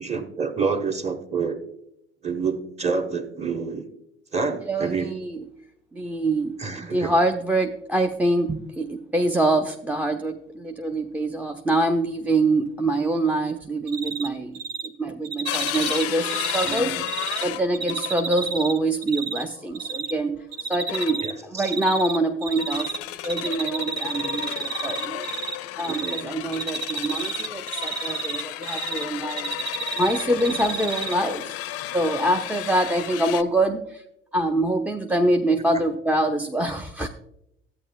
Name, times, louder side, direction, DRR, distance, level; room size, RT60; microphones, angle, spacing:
voice 1, 0.0-1.6 2.2-3.9 4.3-5.1 6.6-7.1 16.6-17.1 21.2-21.6 25.8-26.3, right 5 dB, 20° right, 7 dB, 1.0 m, -28 dB
voice 2, 4.7-5.5 5.9-17.0 17.4-22.9 23.2-25.3 25.8-29.6 30.0-31.6 31.9-34.0 34.3-37.1, right 1 dB, 5° right, 4 dB, 0.4 m, -25 dB
Cricket, 13.9-14.3 14.5-14.9 15.2-17.4 17.7-19.4 19.7-20.1 20.5-21.3 21.6-23.0 23.2-25.5 25.8-26.2 26.5-29.0 29.3-31.1, right 5 dB, 75° right, 0.7 m, -30 dB
sound 1, 15.4-18.4 19.6-19.9 20.9-21.5 22.5-33.4, left 14 dB, 50° left, 0.5 m, -33 dB
13.5 x 8.4 x 2.2 m, 0.80 s
figure-of-eight pair, 60°, 31 cm